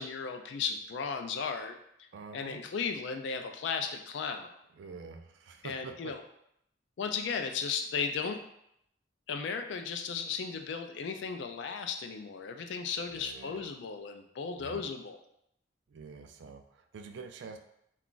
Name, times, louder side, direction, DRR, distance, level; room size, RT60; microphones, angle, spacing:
voice 1, 0.0-1.8 2.3-4.5 5.6-6.2 7.0-8.4 9.3-15.2, left 5 dB, 70° left, 6 dB, 0.3 m, -35 dB
voice 2, 2.1-2.6 4.7-6.1 13.1-13.7 14.6-14.9 15.9-17.6, right 4 dB, 70° right, 6 dB, 0.3 m, -46 dB
2.4 x 2.3 x 3.7 m, 0.75 s
head